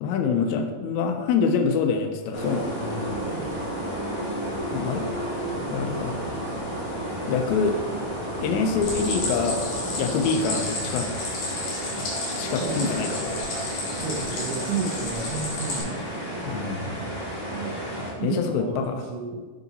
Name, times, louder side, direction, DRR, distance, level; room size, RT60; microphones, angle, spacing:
voice 1, 0.0-3.1 4.7-5.1 5.7-6.2 7.3-7.8 8.4-9.6 10.0-11.1 12.4-13.4 16.4-16.9 18.2-19.0, left 5 dB, 85° left, 5 dB, 1.6 m, -25 dB
sound 1, 2.3-18.1, right 1 dB, 40° left, 0.8 m, -32 dB
voice 2, 3.1-3.6 12.6-13.1 14.0-16.5 17.5-17.9 18.2-19.4, right 4 dB, 80° right, -2 dB, 1.3 m, -32 dB
Stream, 8.8-15.8, left 2 dB, 60° left, 2.7 m, -33 dB
7.4 x 3.9 x 4.0 m, 1.4 s
omnidirectional pair, 3.9 m